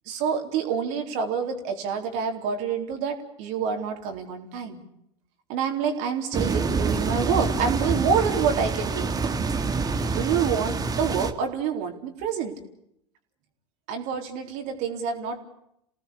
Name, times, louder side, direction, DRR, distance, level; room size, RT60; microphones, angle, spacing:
voice 1, 0.1-4.8 5.5-9.1 10.1-12.5 13.9-15.4, right 6 dB, 55° right, 4 dB, 4.0 m, -27 dB
sound 1, 6.3-11.3, right 4 dB, 25° right, 2.3 m, -26 dB
28.5 x 18.0 x 8.6 m, 0.77 s
figure-of-eight pair, 75°, 15 cm